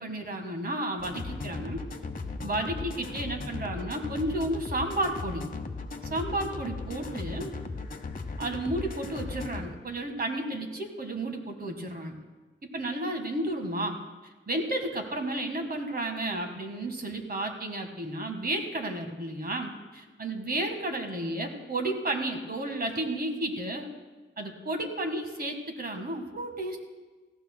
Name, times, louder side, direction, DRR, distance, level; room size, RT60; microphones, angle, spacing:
voice 1, 0.0-1.8 2.4-5.4 6.1-7.5 8.4-12.2 12.7-14.0 14.5-23.9 24.4-26.8, right 1 dB, 50° right, 4 dB, 1.6 m, -32 dB
sound 1, 1.0-9.7, left 3 dB, 45° left, 1.0 m, -37 dB
18.5 x 15.0 x 2.2 m, 1.3 s
wide cardioid pair, 90°, 20 cm